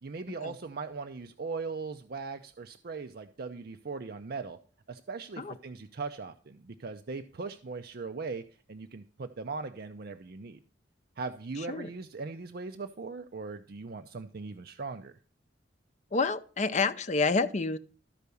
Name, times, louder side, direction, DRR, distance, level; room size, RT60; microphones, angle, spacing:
voice 1, 0.0-4.6 4.9-8.4 8.7-10.6 11.2-15.1, right 4 dB, 55° right, 8 dB, 0.5 m, -39 dB
voice 2, 11.6-11.9 16.1-17.8, left 4 dB, 40° left, 9 dB, 0.6 m, -28 dB
13.0 x 4.7 x 6.8 m, 0.40 s
head